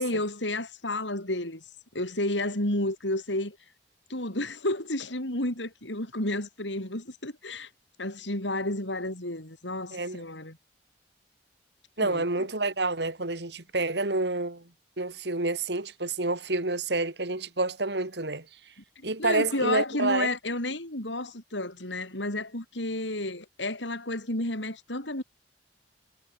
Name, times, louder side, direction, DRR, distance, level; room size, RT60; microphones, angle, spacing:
voice 1, 0.0-1.6 1.9-3.6 4.1-7.7 8.0-10.6 12.0-12.5 19.0-25.2, left 1 dB, 85° left, 7.6 m, -31 dB
voice 2, 12.0-14.7 15.0-18.5 19.0-20.3, right 2 dB, 65° right, 2.7 m, -28 dB
head